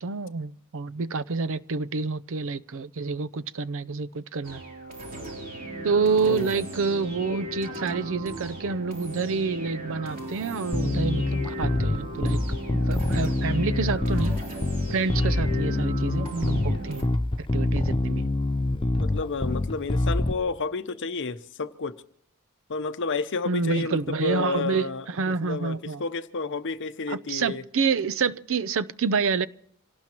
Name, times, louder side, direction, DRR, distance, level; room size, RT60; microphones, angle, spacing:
voice 1, 0.0-4.6 5.8-12.4 12.7-14.4 14.9-17.1 17.4-18.3 23.5-26.0 27.1-29.5, right 4 dB, 60° right, 0.6 m, -28 dB
sound 1, 4.4-17.0, right 1 dB, 40° right, 3.3 m, -37 dB
Bass guitar, 10.7-20.3, left 2 dB, 20° left, 0.5 m, -25 dB
voice 2, 19.0-22.0 22.7-27.6, left 4 dB, 55° left, 0.8 m, -31 dB
26.5 x 18.0 x 3.0 m
head